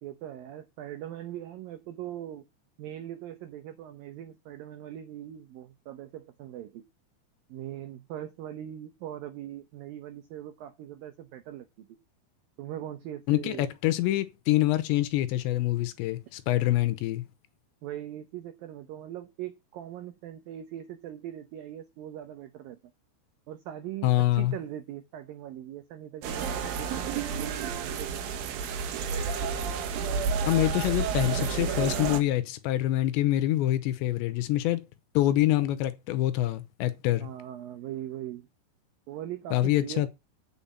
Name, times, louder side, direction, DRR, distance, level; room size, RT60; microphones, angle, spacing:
voice 1, 0.0-2.5 2.8-6.8 7.5-11.9 12.6-13.7 17.8-22.8 23.5-28.4 37.2-38.5 39.1-40.1, right 12 dB, 90° right, 2.0 m, -40 dB
voice 2, 13.3-17.2 24.0-24.5 30.5-34.8 35.1-37.3 39.5-40.1, left 15 dB, 80° left, 3.0 m, -26 dB
sound 1, 26.2-32.2, right 6 dB, 65° right, 2.5 m, -30 dB
9.2 x 5.6 x 7.3 m
omnidirectional pair, 5.4 m